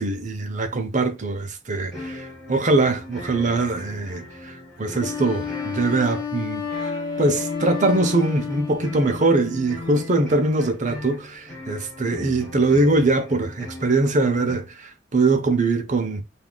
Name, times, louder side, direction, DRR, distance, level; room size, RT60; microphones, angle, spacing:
voice 1, 0.0-16.2, right 2 dB, 45° right, 0.7 m, -22 dB
sound 1, 1.9-14.6, left 2 dB, ahead, 2.2 m, -38 dB
Wind instrument woodwind instrument, 5.0-9.3, left 6 dB, 25° left, 1.1 m, -31 dB
5.5 x 2.4 x 2.3 m
head